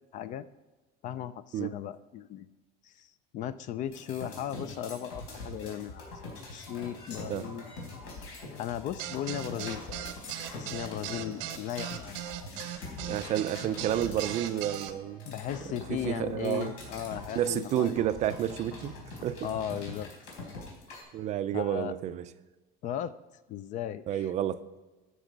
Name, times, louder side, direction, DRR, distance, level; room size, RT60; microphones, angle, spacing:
voice 1, 0.1-0.5 1.0-2.5 2.8-3.1 3.3-6.0 6.5-7.7 8.6-10.0 10.5-12.5 15.2-18.0 19.4-20.1 21.5-21.9 22.8-23.1 23.5-24.3, left 10 dB, 40° left, 0.4 m, -36 dB
sound 1, 3.9-21.0, left 2 dB, 90° left, 4.2 m, -43 dB
sound 2, 9.0-14.9, right 13 dB, 85° right, 0.8 m, -38 dB
sound 3, 12.2-20.0, left 3 dB, 70° left, 3.5 m, -51 dB
voice 2, 13.1-15.3 15.9-16.7 17.4-18.9 19.2-19.5 21.1-22.3 24.1-24.8, right 11 dB, 35° right, 0.4 m, -30 dB
12.5 x 6.3 x 5.1 m
cardioid pair, 160°, 21 cm